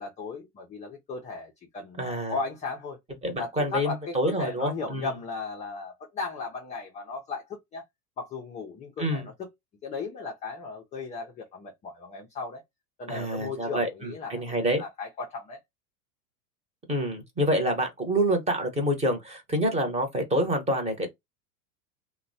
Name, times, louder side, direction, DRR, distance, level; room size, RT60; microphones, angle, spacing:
voice 1, 0.0-3.0 3.4-7.8 8.2-9.5 9.8-12.6 13.0-15.6, left 4 dB, 15° left, 0.3 m, -36 dB
voice 2, 2.0-2.4 3.2-5.1 9.0-9.2 13.1-14.8 16.9-21.1, equal, 15° right, 0.9 m, -27 dB
2.9 x 2.1 x 2.6 m
hypercardioid pair, 105°, 47 cm